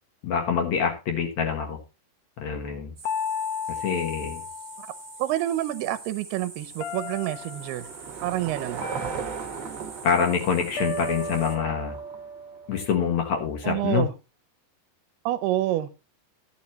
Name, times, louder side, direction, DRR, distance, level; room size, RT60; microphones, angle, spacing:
voice 1, 0.2-1.8 2.4-2.9 3.8-4.4 10.0-12.0 12.7-14.1, left 7 dB, 55° left, 2.2 m, -26 dB
sound 1, 3.0-5.4 6.8-7.8 8.8-10.1 10.8-13.1, left 3 dB, 75° left, 1.9 m, -35 dB
sound 2, 3.0-11.6, right 4 dB, 40° right, 1.2 m, -45 dB
voice 2, 5.2-7.9 8.2-8.8 13.6-14.1 15.3-15.9, right 14 dB, 80° right, 2.5 m, -27 dB
Car passing by / Engine, 6.3-12.8, right 7 dB, 55° right, 1.9 m, -38 dB
14.5 x 9.4 x 3.0 m
omnidirectional pair, 4.8 m